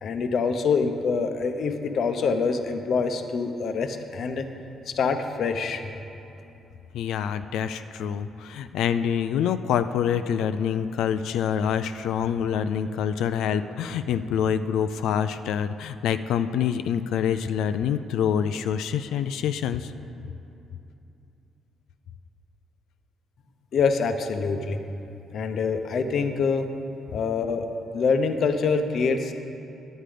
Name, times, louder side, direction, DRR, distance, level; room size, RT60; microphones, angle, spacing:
voice 1, 0.0-4.5 4.9-5.8 23.7-24.8 25.3-26.7 27.1-27.7 27.9-29.3, left 5 dB, 65° left, 7 dB, 0.7 m, -25 dB
voice 2, 6.9-19.9, left 8 dB, 85° left, 10 dB, 0.3 m, -26 dB
10.0 x 9.0 x 5.0 m, 2.8 s
cardioid pair, 90°, 0 cm